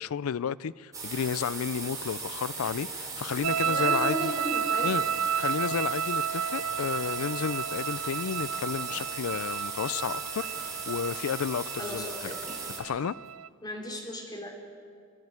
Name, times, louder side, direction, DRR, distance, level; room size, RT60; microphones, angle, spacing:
voice 1, 0.0-4.3 4.8-5.0 5.4-12.3 12.8-13.1, left 7 dB, 80° left, 0.4 m, -32 dB
sound 1, 0.9-12.8, right 4 dB, 15° right, 3.7 m, -38 dB
sound 2, 2.6-3.0 3.6-4.7 5.2-6.2 6.7-7.6 8.3-9.4 9.9-11.0 11.2-13.3, right 1 dB, ahead, 5.8 m, -55 dB
sound 3, 3.4-13.5, right 8 dB, 70° right, 0.4 m, -32 dB
voice 2, 3.6-4.9 11.8-12.4 13.6-14.5, equal, 20° left, 3.3 m, -36 dB
28.0 x 11.0 x 9.5 m
head